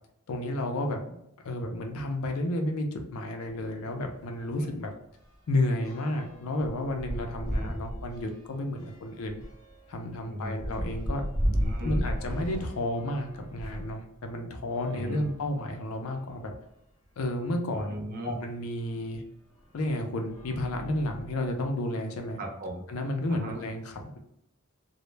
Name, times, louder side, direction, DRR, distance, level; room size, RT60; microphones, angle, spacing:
voice 1, 0.3-1.2 1.4-4.9 5.5-9.4 9.9-11.2 11.8-16.5 17.2-17.9 18.2-19.2 19.7-22.4 22.9-24.2, left 1 dB, 80° left, 4 dB, 0.4 m, -31 dB
sound 1, 4.0-4.2 4.5-13.9 14.7-16.0 16.7-16.8 17.0-17.1 18.8-18.9 19.6-19.9 20.2-21.5, equal, 15° left, 0.9 m, -35 dB
voice 2, 11.5-12.0 14.9-15.2 17.7-18.4 22.4-22.8 23.3-23.6, right 1 dB, 40° right, 2 dB, 0.4 m, -37 dB
2.0 x 2.0 x 3.1 m, 0.76 s
head